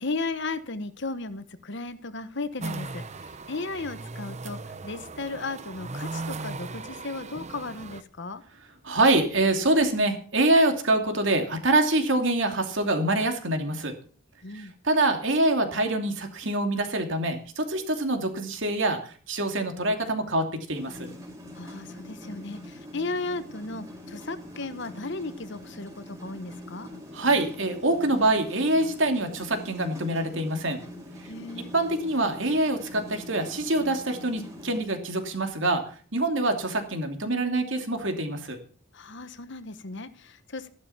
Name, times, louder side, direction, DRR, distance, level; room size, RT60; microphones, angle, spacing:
voice 1, 0.0-8.4 14.4-14.7 21.5-26.9 31.2-31.7 38.9-40.7, left 3 dB, 55° left, 12 dB, 1.2 m, -35 dB
sound 1, 2.6-8.0, right 3 dB, 30° right, 0.7 m, -38 dB
voice 2, 8.8-13.9 14.5-21.1 27.1-30.8 31.6-35.8 36.1-38.6, right 2 dB, 60° right, 5 dB, 2.7 m, -25 dB
sound 2, 20.7-34.8, left 1 dB, 15° right, 3.7 m, -43 dB
14.0 x 11.5 x 5.8 m, 0.43 s
head